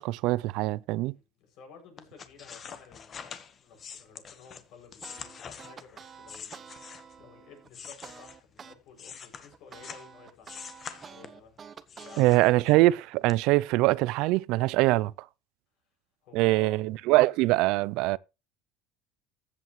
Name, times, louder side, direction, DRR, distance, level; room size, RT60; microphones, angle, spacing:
voice 1, 0.0-1.1 12.2-15.1 16.3-18.2, right 19 dB, 65° right, 0.4 m, -23 dB
voice 2, 1.1-10.5 11.1-12.6 16.2-16.9, left 6 dB, 55° left, 7.0 m, -53 dB
sound 1, 2.0-7.2 7.7-10.1 10.4-11.5 11.9-12.9 13.3-13.4, left 7 dB, 30° left, 1.4 m, -45 dB
sound 2, 5.0-8.8 9.1-12.2, right 6 dB, 25° right, 0.9 m, -48 dB
15.0 x 8.4 x 3.2 m
cardioid pair, 140°, 0 cm